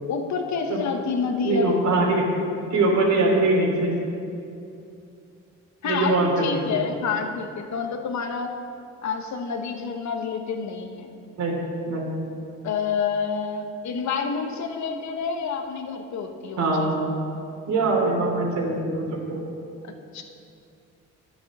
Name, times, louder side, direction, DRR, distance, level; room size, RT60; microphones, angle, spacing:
voice 1, 0.1-1.8 5.8-8.5 9.0-11.1 12.6-16.9 19.8-20.2, left 5 dB, 65° left, 5 dB, 1.3 m, -28 dB
voice 2, 1.4-2.2 2.7-3.9 5.8-6.7 11.4-11.6 11.8-12.1 16.6-17.0 17.7-19.4, right 2 dB, 65° right, -1 dB, 3.2 m, -22 dB
10.5 x 9.5 x 6.2 m, 2.6 s
cardioid pair, 90°, 30 cm